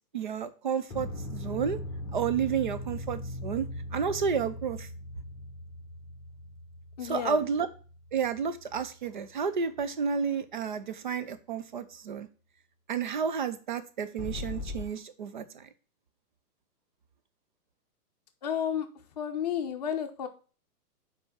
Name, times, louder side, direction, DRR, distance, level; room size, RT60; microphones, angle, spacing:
voice 1, 0.1-1.8 2.1-4.9 7.0-7.7 8.1-12.3 12.9-15.7, right 6 dB, 35° right, 12 dB, 0.5 m, -31 dB
sound 1, 0.9-9.3 14.2-14.8, left 2 dB, 5° left, 1.1 m, -40 dB
voice 2, 7.0-7.4 18.4-18.9 19.2-20.3, left 9 dB, 25° left, 5 dB, 0.7 m, -31 dB
5.4 x 4.7 x 5.5 m, 0.37 s
hypercardioid pair, 170°, 46 cm